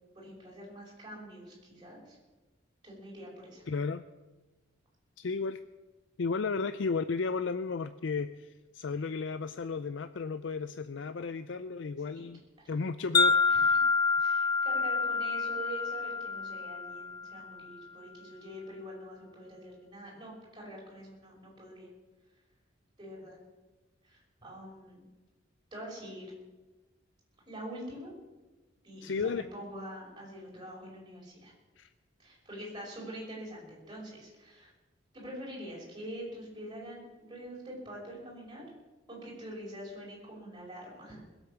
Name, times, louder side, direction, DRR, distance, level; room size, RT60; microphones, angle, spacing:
voice 1, 0.1-2.2 2.8-3.6 12.2-12.3 13.5-13.8 14.2-21.9 23.0-23.4 24.0-25.1 25.7-26.3 27.5-28.1 28.8-31.5 32.2-34.7 35.1-38.7 39.1-41.3, equal, 25° right, -4 dB, 5.5 m, -45 dB
voice 2, 3.7-4.0 5.2-5.6 6.2-12.4 12.7-13.8 29.0-29.5 31.8-31.9, left 4 dB, 65° left, 11 dB, 0.5 m, -34 dB
Wind chime, 13.1-17.4, left 4 dB, 20° left, 0.6 m, -27 dB
21.0 x 8.2 x 7.0 m, 1.2 s
head